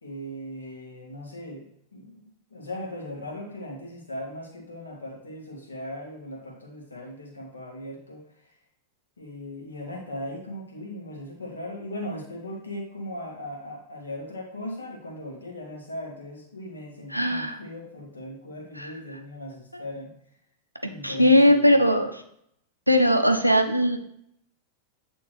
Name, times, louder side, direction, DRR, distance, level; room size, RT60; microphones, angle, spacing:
voice 1, 0.0-8.5 9.2-20.1 20.9-21.8, left 1 dB, 75° left, -1 dB, 1.6 m, -38 dB
voice 2, 17.1-17.6 18.8-18.9 19.7-19.8 21.0-22.2 22.9-24.0, equal, 90° right, 5 dB, 0.5 m, -20 dB
8.4 x 3.5 x 3.2 m, 0.72 s
figure-of-eight pair, 90°, 0 cm